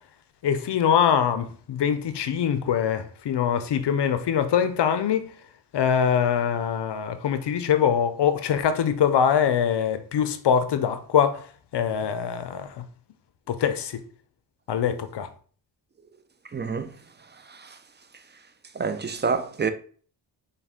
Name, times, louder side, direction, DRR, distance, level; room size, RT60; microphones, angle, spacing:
voice 1, 0.4-5.3 5.7-11.5 11.7-12.9 13.5-14.0 14.7-15.3, left 8 dB, 65° left, 0.6 m, -23 dB
voice 2, 16.5-16.9 18.8-19.7, right 5 dB, 25° right, 0.4 m, -27 dB
4.1 x 2.3 x 3.5 m
cardioid pair, 50°, 45 cm